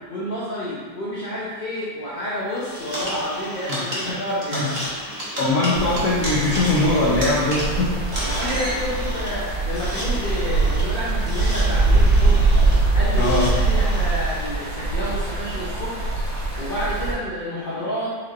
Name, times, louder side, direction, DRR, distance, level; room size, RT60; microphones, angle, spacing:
voice 1, 0.1-4.7 8.2-12.5 12.9-16.1 16.6-18.2, equal, 80° left, -8 dB, 0.5 m, -29 dB
sound 1, 2.6-14.5, equal, 15° left, 0.6 m, -36 dB
sound 2, 2.9-8.8, equal, 30° right, 0.8 m, -31 dB
voice 2, 5.4-7.9 13.2-13.5, left 2 dB, 60° left, -7 dB, 0.9 m, -21 dB
sound 3, 5.7-17.1, right 3 dB, 85° right, 1.8 m, -22 dB
6.1 x 2.9 x 2.4 m, 1.5 s
omnidirectional pair, 2.0 m